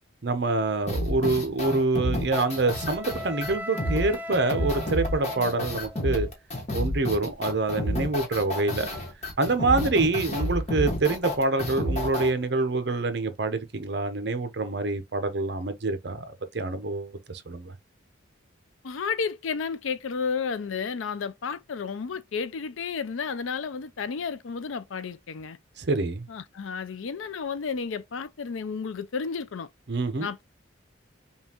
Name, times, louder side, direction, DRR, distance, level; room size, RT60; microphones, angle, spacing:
voice 1, 0.2-6.3 6.7-8.9 9.4-16.2 16.5-17.7 25.8-26.3 29.9-30.3, right 3 dB, 55° right, 0.7 m, -26 dB
sound 1, 0.9-12.3, equal, 35° left, 1.2 m, -30 dB
Wind instrument woodwind instrument, 2.3-6.3, equal, 10° right, 0.4 m, -40 dB
voice 2, 18.8-25.6 26.3-29.7 30.2-30.4, left 5 dB, 85° left, 0.5 m, -32 dB
5.4 x 2.4 x 2.9 m
head